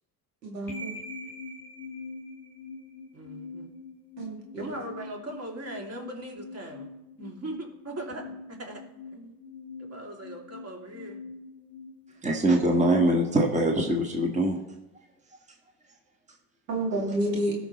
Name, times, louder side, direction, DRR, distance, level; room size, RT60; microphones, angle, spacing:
voice 1, 0.4-0.9 4.2-4.8 16.7-17.5, right 1 dB, 90° right, -1 dB, 2.4 m, -30 dB
sound 1, 0.7-12.7, left 3 dB, 5° left, 2.8 m, -44 dB
voice 2, 3.1-3.7 4.6-6.9 7.2-8.8 9.1-9.3 9.8-11.2, right 1 dB, 30° right, 1 dB, 2.8 m, -39 dB
voice 3, 12.2-14.6, right 1 dB, 15° right, 2 dB, 1.5 m, -23 dB
18.0 x 6.2 x 3.1 m, 0.98 s
hypercardioid pair, 75°, 48 cm